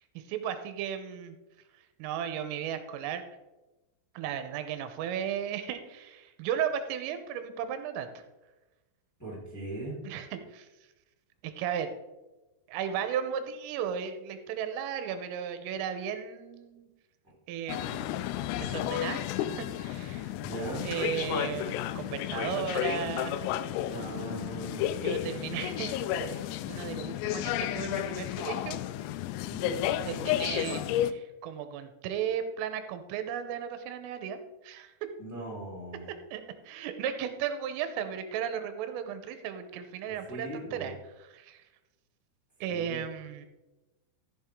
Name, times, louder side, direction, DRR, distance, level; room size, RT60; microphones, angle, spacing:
voice 1, 0.2-1.4 2.0-3.2 4.1-8.2 10.0-10.7 11.4-11.9 12.7-16.9 17.5-18.2 18.6-20.3 20.8-23.5 25.0-28.8 30.1-34.4 34.6-35.1 36.3-40.9 41.2-41.6 42.6-43.5, right 8 dB, 90° right, 9 dB, 3.4 m, -35 dB
voice 2, 9.2-10.0 17.2-17.3 20.4-20.9 23.9-24.9 29.5-29.9 35.2-36.1 40.1-40.9 42.7-43.0, right 1 dB, 5° left, -5 dB, 2.8 m, -39 dB
sound 1, 17.7-31.1, left 12 dB, 90° left, 3.2 m, -32 dB
sound 2, 23.8-27.1 27.4-27.6, right 7 dB, 70° left, 4.4 m, -55 dB
14.5 x 7.3 x 3.6 m, 1.1 s
omnidirectional pair, 5.8 m